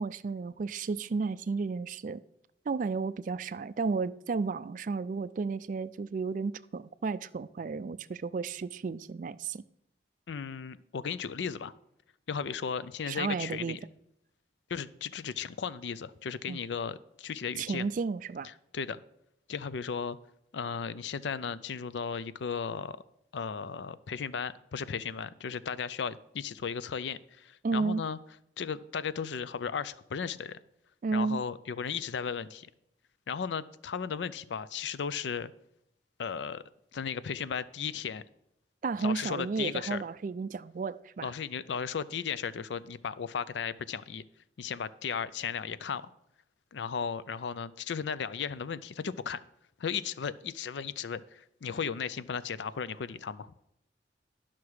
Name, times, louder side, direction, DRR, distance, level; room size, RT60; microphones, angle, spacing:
voice 1, 0.0-2.2 2.7-9.6 13.1-13.8 16.5-16.6 17.6-18.5 27.6-28.0 31.0-31.4 38.8-41.3, right 4 dB, 45° right, 0.3 m, -33 dB
voice 2, 10.3-11.7 12.3-13.8 14.7-17.8 18.4-19.0 19.5-20.2 20.5-23.0 23.3-28.2 28.6-30.6 31.1-32.7 33.3-35.5 36.2-36.6 36.9-38.2 39.0-40.0 41.2-44.2 44.6-46.0 46.7-49.4 49.8-53.5, left 6 dB, 80° left, 0.4 m, -35 dB
11.5 x 5.9 x 4.8 m
head